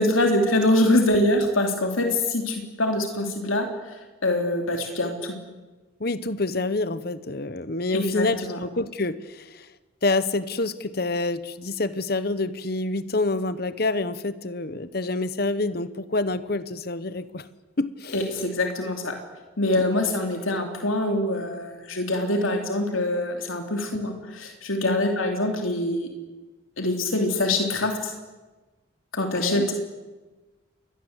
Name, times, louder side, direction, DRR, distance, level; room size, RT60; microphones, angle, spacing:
voice 1, 0.0-4.0 4.2-5.3 7.9-8.6 18.1-19.2 19.6-26.1 26.8-28.1 29.1-29.7, left 1 dB, 90° left, 4 dB, 3.3 m, -24 dB
voice 2, 6.0-9.7 10.0-17.4 17.8-18.2 24.8-25.0 29.2-29.7, left 2 dB, 50° left, 14 dB, 1.0 m, -27 dB
29.0 x 22.5 x 8.2 m, 1.2 s
head